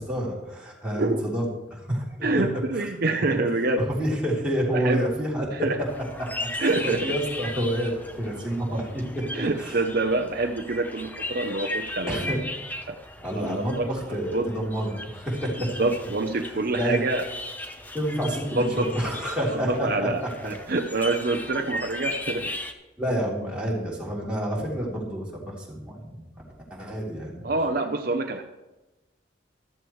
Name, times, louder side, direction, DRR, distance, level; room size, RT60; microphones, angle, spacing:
voice 1, 0.0-2.4 2.7-2.9 3.8-5.5 6.2-9.3 9.6-9.8 12.1-12.4 13.2-15.7 16.7-17.0 17.9-20.5 23.0-26.4 26.7-27.5, equal, 5° right, -6 dB, 3.3 m, -29 dB
voice 2, 0.9-1.3 2.2-3.9 4.7-5.0 5.5-5.8 6.6-7.1 9.3-12.3 12.9-13.0 13.4-13.9 14.3-14.5 15.8-17.2 18.5-18.9 19.5-22.6 27.4-28.4, right 2 dB, 55° right, 5 dB, 0.7 m, -26 dB
sound 1, 5.8-22.7, left 1 dB, 10° left, 0.9 m, -37 dB
14.0 x 13.0 x 3.2 m, 1.1 s
head